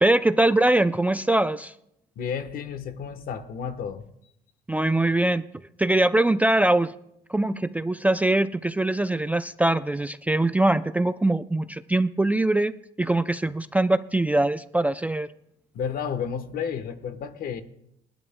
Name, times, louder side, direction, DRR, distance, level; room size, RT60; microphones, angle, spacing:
voice 1, 0.0-1.7 4.7-5.4 5.8-6.9 7.3-15.3, right 2 dB, 10° right, 12 dB, 0.3 m, -22 dB
voice 2, 2.2-4.0 15.7-17.6, left 7 dB, 60° left, 10 dB, 1.2 m, -31 dB
29.5 x 11.0 x 2.2 m, 0.79 s
cardioid pair, 110°, 17 cm